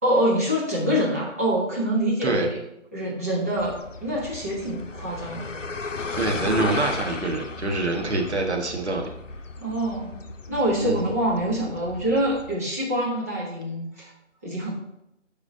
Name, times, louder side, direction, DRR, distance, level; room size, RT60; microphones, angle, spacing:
voice 1, 0.0-2.6 2.9-5.5 9.6-10.2 10.5-14.1 14.4-14.7, equal, 10° right, -6 dB, 1.1 m, -25 dB
sound 1, 3.6-12.6, left 3 dB, 85° left, 0.8 m, -35 dB
voice 2, 6.1-9.1 10.8-11.1, right 2 dB, 65° right, 1 dB, 1.6 m, -25 dB
12.5 x 4.9 x 2.8 m, 0.80 s
figure-of-eight pair, 160°, 37 cm